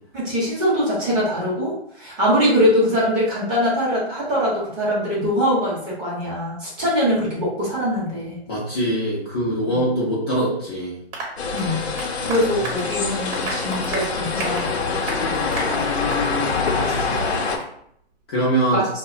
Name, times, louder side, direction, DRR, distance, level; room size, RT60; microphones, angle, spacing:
voice 1, 0.1-8.4 9.7-9.8 11.5-11.8 12.3-14.7 16.8-17.3 18.7-18.9, equal, 15° right, -7 dB, 0.7 m, -22 dB
voice 2, 8.5-11.0 12.2-12.5 18.3-18.8, right 1 dB, 25° left, -7 dB, 0.5 m, -23 dB
Applause, 11.1-16.3 16.7-16.8 17.1-17.2 17.6-17.7, right 2 dB, 35° right, 1.0 m, -33 dB
sound 1, 11.4-17.6, left 4 dB, 75° left, 0.6 m, -24 dB
2.5 x 2.1 x 2.5 m, 0.70 s
hypercardioid pair, 150°, 32 cm